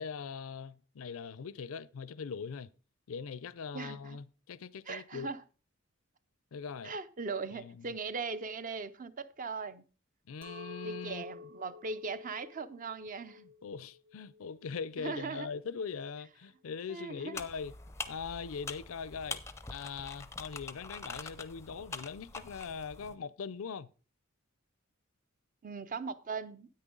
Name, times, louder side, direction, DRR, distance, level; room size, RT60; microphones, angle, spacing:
voice 1, 0.0-2.7 3.1-5.3 6.5-6.9 7.6-7.9 10.3-11.2 13.4-17.7 18.1-19.4 19.7-23.9, left 6 dB, 75° left, 0.5 m, -41 dB
voice 2, 3.7-4.2 4.9-5.4 6.8-9.8 10.8-13.4 15.0-15.5 16.9-17.4 25.6-26.7, right 4 dB, 40° right, 0.5 m, -39 dB
Chink clink, 10.4-15.6, left 4 dB, 60° right, 0.9 m, -50 dB
sound 1, 17.4-23.1, left 4 dB, 15° left, 0.5 m, -44 dB
9.7 x 8.7 x 3.8 m
head